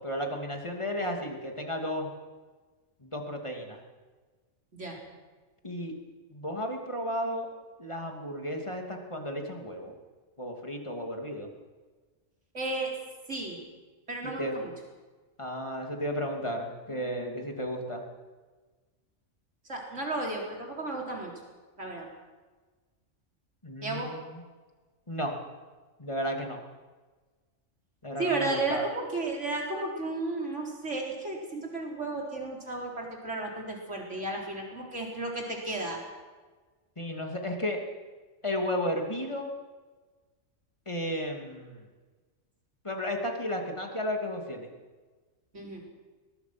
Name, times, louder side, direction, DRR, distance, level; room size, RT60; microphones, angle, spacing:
voice 1, 0.0-2.1 3.0-3.8 5.6-5.9 6.3-7.5 7.8-9.9 10.4-11.5 14.2-14.6 15.4-18.0 23.6-24.4 25.1-25.4 26.0-26.6 28.0-28.8 37.0-37.8 38.4-39.5 40.9-41.8 42.8-44.7, equal, 25° left, 2 dB, 2.8 m, -33 dB
voice 2, 12.5-12.9 13.3-13.6 14.1-14.7 19.7-21.3 21.8-22.1 23.8-24.1 28.2-36.0 45.5-45.8, right 2 dB, 70° right, -1 dB, 4.5 m, -33 dB
21.5 x 20.5 x 6.1 m, 1.3 s
omnidirectional pair, 1.3 m